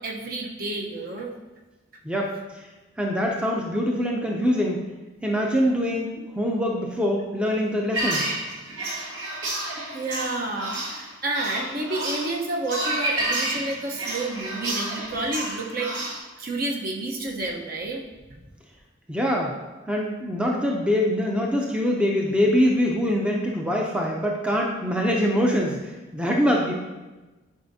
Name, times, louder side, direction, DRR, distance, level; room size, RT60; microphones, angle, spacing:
voice 1, 0.0-1.3 9.9-15.9 16.4-18.0, right 2 dB, 50° right, 1 dB, 0.9 m, -30 dB
voice 2, 2.0-2.7 3.0-4.8 5.2-8.3 19.1-19.6 19.9-26.7, equal, 5° right, -1 dB, 0.5 m, -24 dB
sound 1, 7.9-16.2, right 1 dB, 80° right, 1.8 m, -30 dB
10.0 x 4.9 x 2.7 m, 1.2 s
head